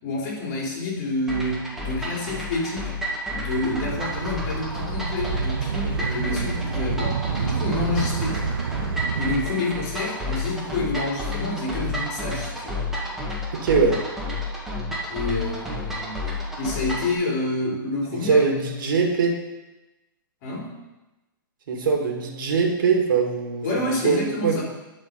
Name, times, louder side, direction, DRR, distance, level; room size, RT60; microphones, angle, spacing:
voice 1, 0.0-2.9 3.3-8.5 9.2-12.9 15.1-16.3 16.6-18.5 20.4-20.7 23.6-24.6, left 2 dB, 50° left, -2 dB, 3.8 m, -28 dB
sound 1, 1.3-17.1, left 2 dB, 5° right, 2.1 m, -31 dB
sound 2, 3.5-9.4, right 6 dB, 85° right, 0.7 m, -28 dB
voice 2, 13.5-14.0 18.1-19.4 21.7-24.6, right 5 dB, 65° right, 1 dB, 2.0 m, -22 dB
11.5 x 4.9 x 5.4 m, 1.0 s
hypercardioid pair, 130°, 12 cm